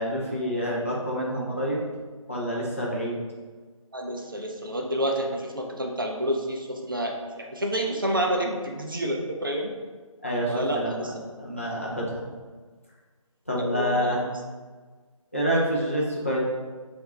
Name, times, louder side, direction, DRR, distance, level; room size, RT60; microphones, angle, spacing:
voice 1, 0.0-1.8 2.3-3.2 10.2-11.1 11.4-12.3 13.5-14.3 15.3-16.4, equal, 25° left, -5 dB, 0.5 m, -27 dB
voice 2, 3.9-9.8 10.5-11.1 13.6-14.1, equal, 40° right, 2 dB, 0.4 m, -29 dB
3.3 x 2.4 x 3.9 m, 1.4 s
figure-of-eight pair, 175°, 18 cm